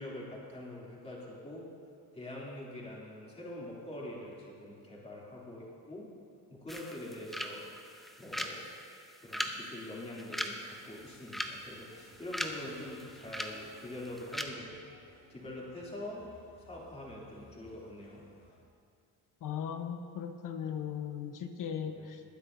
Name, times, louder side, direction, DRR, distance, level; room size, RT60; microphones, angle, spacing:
voice 1, 0.0-1.7 2.1-6.1 6.5-8.7 9.2-14.8 15.3-16.3 16.6-18.2 21.9-22.0, left 1 dB, 15° left, -5 dB, 3.0 m, -44 dB
sound 1, 6.7-14.4, equal, ahead, 0.8 m, -41 dB
sound 2, 10.8-18.6, left 1 dB, 35° left, 3.2 m, -62 dB
voice 2, 19.4-22.2, left 8 dB, 60° left, 7 dB, 1.1 m, -38 dB
20.0 x 9.8 x 2.7 m, 2.4 s
cardioid pair, 110°, 36 cm